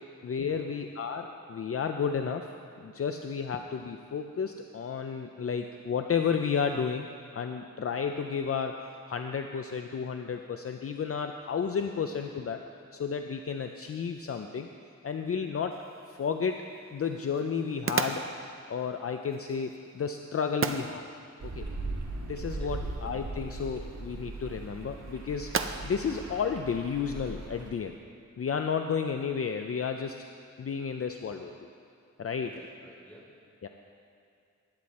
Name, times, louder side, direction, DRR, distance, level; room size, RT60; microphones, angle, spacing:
voice 1, 0.2-2.5 2.8-7.1 7.3-12.6 12.9-14.7 15.0-15.8 16.1-16.7 16.9-18.3 18.7-21.1 21.5-21.7 22.2-25.5 25.8-28.0 28.4-30.3 30.6-31.7 32.2-32.5 33.6-33.7, left 6 dB, 50° left, 5 dB, 0.5 m, -32 dB
sound 1, 15.7-27.4, right 5 dB, 45° right, 0.6 m, -39 dB
sound 2, 21.4-27.7, right 2 dB, 75° right, 1.7 m, -39 dB
voice 2, 22.6-22.9 32.4-33.2, equal, 5° left, -5 dB, 3.2 m, -50 dB
19.5 x 9.5 x 4.2 m, 2.4 s
wide cardioid pair, 140°, 30 cm